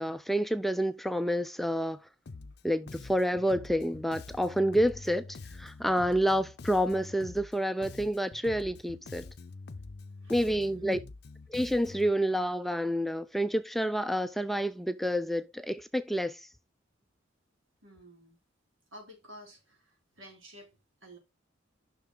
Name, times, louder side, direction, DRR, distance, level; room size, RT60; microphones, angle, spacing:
voice 1, 0.0-2.0 2.6-9.3 10.3-11.0 11.5-16.4, equal, ahead, 0.3 m, -29 dB
Bass guitar, 2.3-2.6 2.9-7.6 7.8-12.1, left 3 dB, 55° left, 0.5 m, -46 dB
voice 2, 10.2-11.0 17.8-18.4 18.9-20.7 21.0-21.2, equal, 85° right, 3.8 m, -52 dB
7.2 x 5.9 x 3.8 m
head